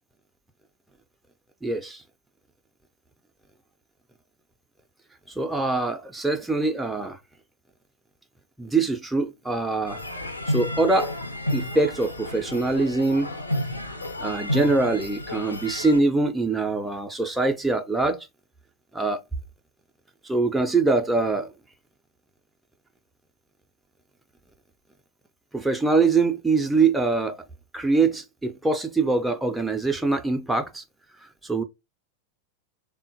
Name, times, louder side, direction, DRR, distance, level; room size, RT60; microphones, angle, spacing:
voice 1, 1.6-2.0 5.3-7.2 8.6-10.0 10.5-11.2 11.5-13.3 14.2-18.3 18.9-19.2 20.2-21.5 25.5-27.4 27.7-30.8 31.2-31.6, right 3 dB, 5° right, 0.4 m, -23 dB
sound 1, 9.9-16.0, left 1 dB, 80° left, 0.7 m, -31 dB
3.5 x 2.1 x 2.6 m
figure-of-eight pair, 90°, 0 cm